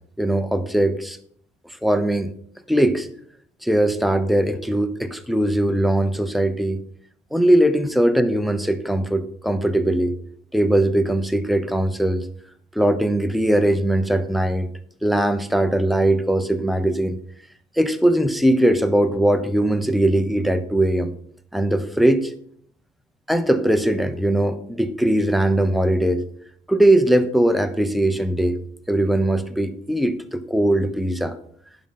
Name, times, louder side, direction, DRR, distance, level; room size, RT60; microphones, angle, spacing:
voice 1, 0.2-1.2 1.8-2.3 2.7-3.1 3.6-6.8 7.3-10.1 10.5-12.3 12.7-14.7 15.0-17.2 17.8-21.1 21.5-22.3 23.3-26.2 26.7-28.6 28.9-31.4, right 1 dB, ahead, 11 dB, 0.8 m, -20 dB
10.5 x 5.6 x 5.5 m, 0.64 s
cardioid pair, 110°, 17 cm